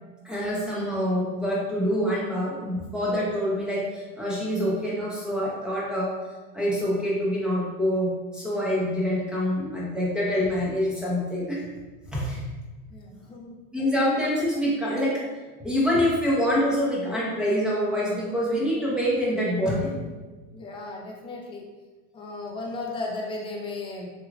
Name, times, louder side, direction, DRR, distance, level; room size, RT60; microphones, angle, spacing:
voice 1, 0.2-6.1 6.5-11.6 12.1-12.4 13.7-15.2 15.6-20.0, equal, ahead, -7 dB, 0.8 m, -26 dB
voice 2, 12.9-13.6 20.5-21.6 22.1-24.1, left 2 dB, 15° left, -1 dB, 0.4 m, -35 dB
3.5 x 3.0 x 2.3 m, 1.3 s
hypercardioid pair, 115°, 41 cm